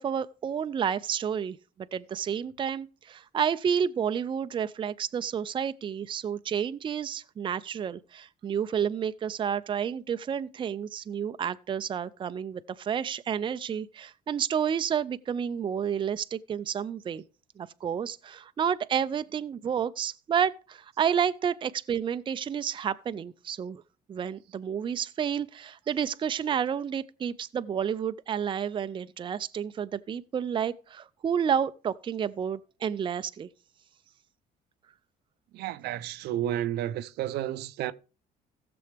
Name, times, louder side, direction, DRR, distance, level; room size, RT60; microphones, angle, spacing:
voice 1, 0.0-1.6 1.9-17.2 17.6-23.8 24.1-33.5, right 8 dB, 30° right, 0.4 m, -30 dB
voice 2, 35.5-37.9, right 12 dB, 75° right, 0.6 m, -31 dB
16.0 x 6.9 x 3.3 m
cardioid pair, 110°, 17 cm